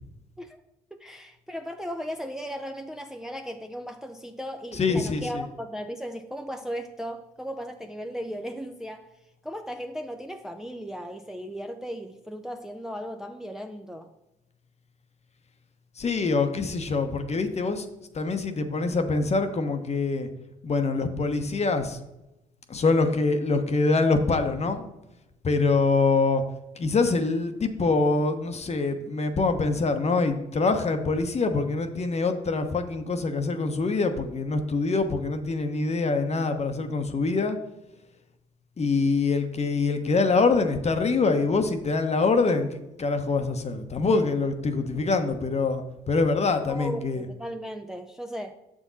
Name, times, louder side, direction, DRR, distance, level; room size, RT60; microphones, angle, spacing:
voice 1, 0.9-9.1 9.4-14.1 46.7-48.6, equal, 5° right, 5 dB, 0.6 m, -36 dB
voice 2, 4.7-5.5 16.0-17.9 18.1-20.3 20.6-22.0 22.7-24.9 25.4-26.4 26.7-37.6 38.8-47.3, left 3 dB, 35° left, 7 dB, 1.0 m, -25 dB
6.9 x 6.3 x 4.0 m, 0.93 s
hypercardioid pair, 55°, 18 cm